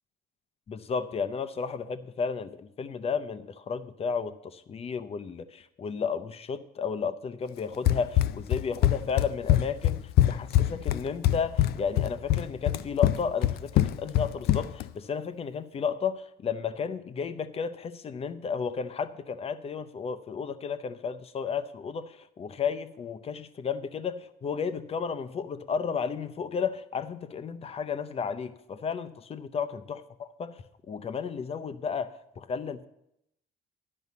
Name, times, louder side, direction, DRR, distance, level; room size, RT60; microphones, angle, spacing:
voice 1, 0.7-32.9, left 6 dB, 35° left, 12 dB, 0.7 m, -33 dB
Run, 7.9-14.9, left 13 dB, 70° left, 0.4 m, -24 dB
11.0 x 5.4 x 8.3 m, 0.81 s
cardioid pair, 110°, 17 cm